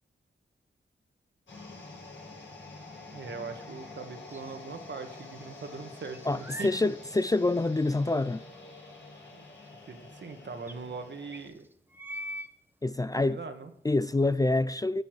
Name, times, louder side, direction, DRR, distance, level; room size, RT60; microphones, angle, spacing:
sound 1, 1.5-11.5, left 3 dB, 80° left, 5.9 m, -47 dB
voice 1, 3.1-6.7 9.3-9.5 9.9-11.7 13.0-13.7, right 4 dB, 70° right, 1.7 m, -41 dB
sound 2, 4.3-5.3 5.5-6.8 7.4-7.5 9.7-9.8 9.9-10.0 10.7-10.8 11.3-12.5, equal, 10° right, 1.0 m, -42 dB
voice 2, 6.3-8.4 12.8-13.4 13.8-15.0, left 2 dB, 20° left, 0.4 m, -26 dB
12.5 x 8.4 x 4.9 m
cardioid pair, 65°, 19 cm